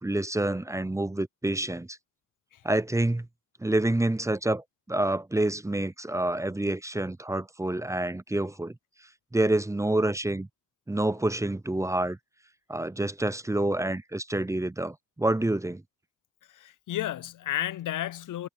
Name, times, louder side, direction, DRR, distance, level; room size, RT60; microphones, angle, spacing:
voice 1, 0.0-2.0 2.6-3.3 3.6-8.8 9.3-10.5 10.9-12.2 12.7-15.8, right 1 dB, 10° right, 0.5 m, -27 dB
voice 2, 16.5-18.5, left 12 dB, 75° left, 0.5 m, -32 dB
cardioid pair, 65°, 31 cm